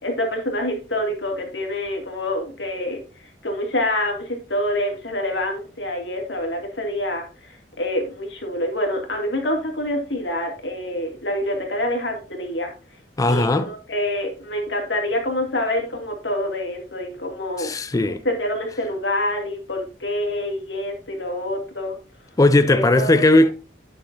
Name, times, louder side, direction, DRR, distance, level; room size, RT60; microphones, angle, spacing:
voice 1, 0.0-3.0 3.4-12.7 13.2-17.7 18.0-22.0 22.6-23.2, left 1 dB, 90° left, 2.4 m, -26 dB
voice 2, 13.2-13.7 17.6-18.2 22.4-23.5, left 2 dB, 20° left, 0.3 m, -17 dB
9.6 x 6.4 x 2.7 m
head